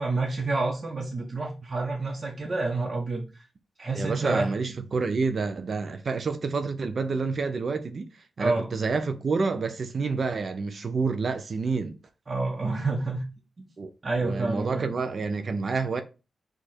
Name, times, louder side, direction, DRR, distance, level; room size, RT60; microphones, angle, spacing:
voice 1, 0.0-3.4 3.8-4.5 8.4-8.7 12.3-13.2 13.6-13.7 14.0-14.9, right 3 dB, 45° right, 1.1 m, -28 dB
voice 2, 3.9-8.1 8.4-12.0 13.8-13.9 14.2-16.0, right 4 dB, 60° right, 0.6 m, -28 dB
4.9 x 2.6 x 4.3 m
cardioid pair, 80°, 0 cm